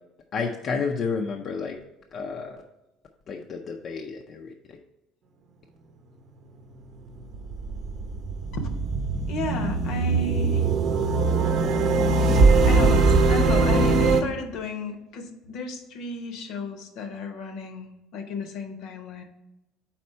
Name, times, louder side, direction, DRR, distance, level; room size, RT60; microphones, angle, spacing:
voice 1, 0.3-1.8 2.1-2.6 3.3-4.5, left 5 dB, 45° left, 2 dB, 0.5 m, -30 dB
sound 1, 6.9-14.2, right 3 dB, 55° right, 0.7 m, -21 dB
voice 2, 9.3-10.7 12.4-19.2, left 3 dB, 70° left, 6 dB, 0.9 m, -33 dB
4.3 x 4.2 x 5.4 m, 0.94 s
cardioid pair, 115°, 0 cm